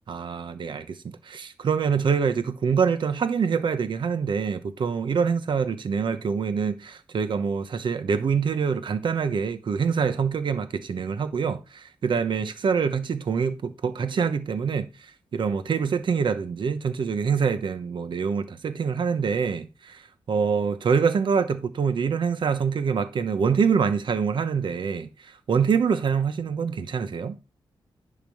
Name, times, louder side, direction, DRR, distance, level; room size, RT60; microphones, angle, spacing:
voice 1, 0.1-20.0 20.3-27.4, right 6 dB, 60° right, 1.0 m, -25 dB
10.5 x 3.7 x 6.4 m
wide cardioid pair, 155°, 9 cm